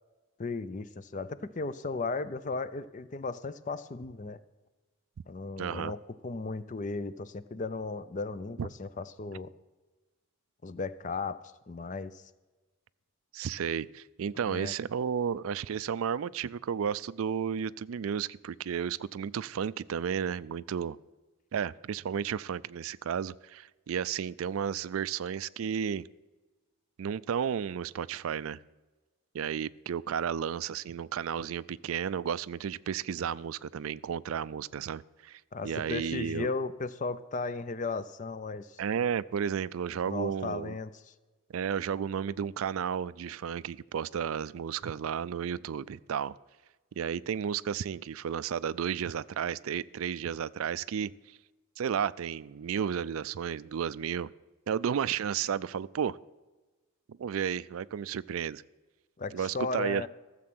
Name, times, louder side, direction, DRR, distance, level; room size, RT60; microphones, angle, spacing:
voice 1, 0.4-4.4 5.3-9.5 10.6-12.2 14.4-14.7 35.5-38.8 40.1-40.9 59.2-60.1, left 3 dB, 35° left, 15 dB, 0.5 m, -36 dB
voice 2, 5.6-5.9 8.6-8.7 13.3-21.0 21.5-26.1 27.0-28.6 29.3-36.5 38.8-40.8 41.5-46.4 47.0-51.4 51.8-54.3 54.7-56.2 57.1-58.6 59.3-60.1, right 7 dB, 75° right, 19 dB, 0.4 m, -33 dB
14.5 x 7.6 x 6.1 m, 1.2 s
head